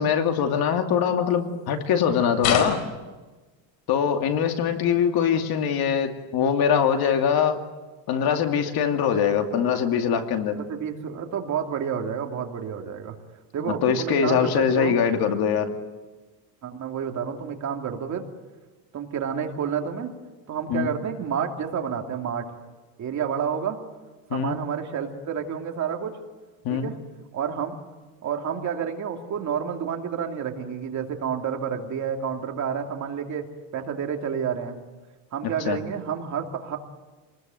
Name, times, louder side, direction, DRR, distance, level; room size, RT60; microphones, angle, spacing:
voice 1, 0.0-2.8 3.9-7.6 8.1-10.6 13.6-15.7 20.7-20.9 24.3-24.6 26.6-26.9 35.7-35.8, left 7 dB, 50° left, 5 dB, 2.6 m, -23 dB
sound 1, 2.4-3.0 6.2-6.3, left 8 dB, 75° left, 5.1 m, -25 dB
voice 2, 10.6-13.2 13.5-15.0 16.6-18.3 18.9-20.1 20.5-22.5 23.0-23.8 24.3-26.1 26.7-27.0 27.3-27.8 28.2-33.5 33.7-34.8 35.3-36.8, right 7 dB, 35° right, 3 dB, 2.7 m, -29 dB
27.5 x 20.5 x 9.3 m, 1.2 s
cardioid pair, 150°, 48 cm